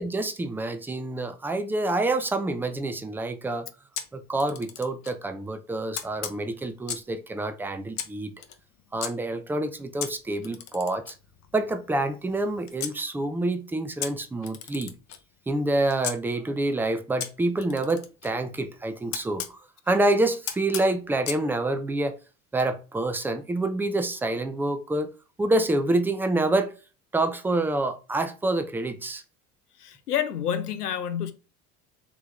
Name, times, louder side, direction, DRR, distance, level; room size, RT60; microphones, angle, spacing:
voice 1, 0.0-3.7 4.1-8.3 8.9-11.1 11.5-14.9 15.5-19.6 19.9-22.2 22.5-25.1 25.4-26.7 27.1-29.2, right 2 dB, 5° right, 0.4 m, -27 dB
Camera, 3.9-5.2 5.9-7.2 7.9-9.1 10.0-13.0 14.0-16.2 17.2-19.6 20.5-21.4, left 9 dB, 40° left, 0.7 m, -37 dB
voice 2, 29.8-31.3, left 9 dB, 90° left, 0.6 m, -28 dB
3.8 x 2.9 x 3.6 m
hypercardioid pair, 70°, 45 cm